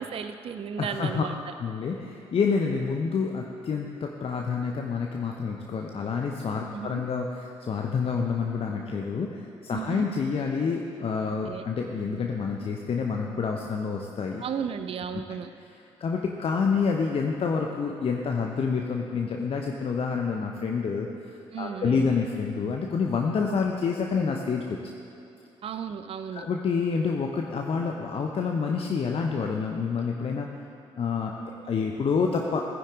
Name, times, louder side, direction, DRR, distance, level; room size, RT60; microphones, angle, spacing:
voice 1, 0.0-1.5 6.7-7.0 9.7-10.1 11.5-11.6 14.4-15.5 21.5-22.1 25.6-26.5, right 7 dB, 40° right, 9 dB, 0.6 m, -34 dB
voice 2, 0.8-1.2 1.6-14.4 16.0-24.8 26.3-30.5 31.0-32.6, left 5 dB, 40° left, 1 dB, 0.9 m, -28 dB
17.0 x 10.0 x 3.8 m, 2.7 s
figure-of-eight pair, 45°, 15 cm